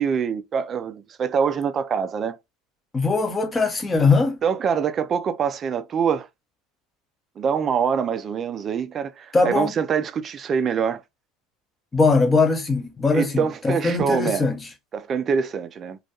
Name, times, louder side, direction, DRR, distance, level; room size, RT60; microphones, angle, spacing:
voice 1, 0.0-2.4 4.4-6.3 7.4-11.0 13.1-14.5 14.9-16.0, right 6 dB, 40° right, 0.3 m, -24 dB
voice 2, 2.9-4.4 9.3-9.7 11.9-14.6, left 3 dB, 20° left, 0.6 m, -20 dB
2.3 x 2.2 x 2.7 m
hypercardioid pair, 85°, 0 cm